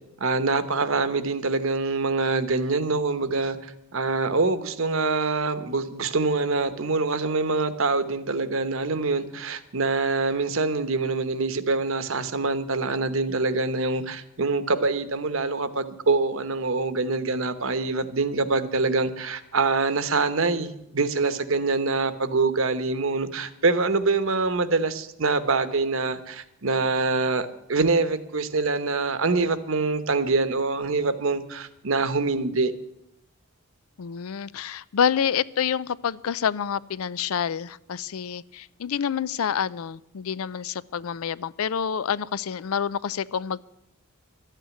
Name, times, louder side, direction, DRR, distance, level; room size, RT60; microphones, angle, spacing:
voice 1, 0.2-32.7, right 3 dB, 65° right, 11 dB, 1.0 m, -25 dB
voice 2, 34.0-43.6, left 7 dB, 75° left, 19 dB, 0.4 m, -28 dB
13.0 x 9.2 x 9.3 m, 0.81 s
head